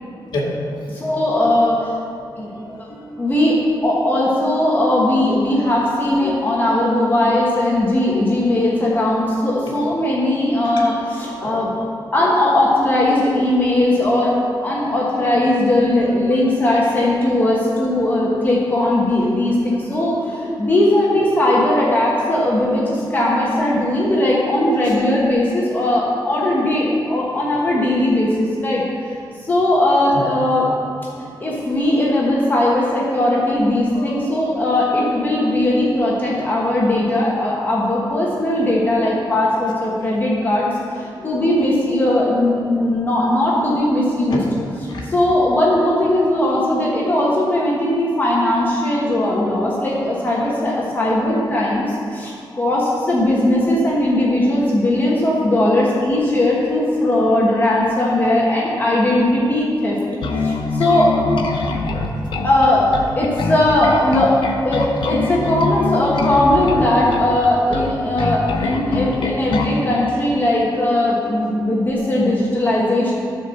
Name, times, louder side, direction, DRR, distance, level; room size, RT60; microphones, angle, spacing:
voice 1, 0.3-1.0 2.2-3.0 6.2-6.6 9.6-9.8 11.4-11.7 12.2-12.3 14.9-15.1 24.8-25.0 26.6-26.7 27.3-27.4 27.7-27.9 30.1-30.2 31.2-31.5 33.9-34.4 41.4-41.5 44.3-44.4 44.9-45.1 53.8-53.9 71.6-71.8, left 1 dB, 60° left, -3 dB, 1.9 m, -31 dB
voice 2, 0.9-2.0 2.4-2.5 3.2-11.7 12.1-14.3 14.6-28.8 29.4-30.7 31.4-44.4 45.0-60.0 60.4-61.1 62.4-73.1, left 1 dB, 25° left, -5 dB, 1.3 m, -18 dB
Bass guitar, 60.2-69.8, left 3 dB, 80° left, 0.9 m, -23 dB
13.0 x 4.6 x 6.4 m, 2.4 s
wide cardioid pair, 170°, 8 cm